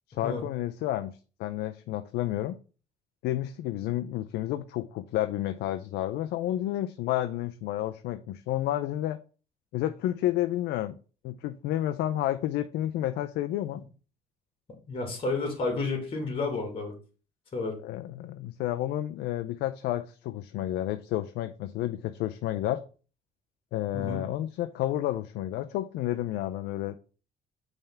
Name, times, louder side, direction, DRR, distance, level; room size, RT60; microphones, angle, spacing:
voice 1, 0.2-1.1 1.4-2.6 3.2-9.2 9.7-11.0 11.2-13.8 17.8-22.8 23.7-26.9, left 13 dB, 80° left, 0.5 m, -30 dB
voice 2, 14.9-16.9 17.5-17.8 23.9-24.2, left 3 dB, 35° left, 2.4 m, -31 dB
5.5 x 3.5 x 5.6 m
cardioid pair, 110°, 17 cm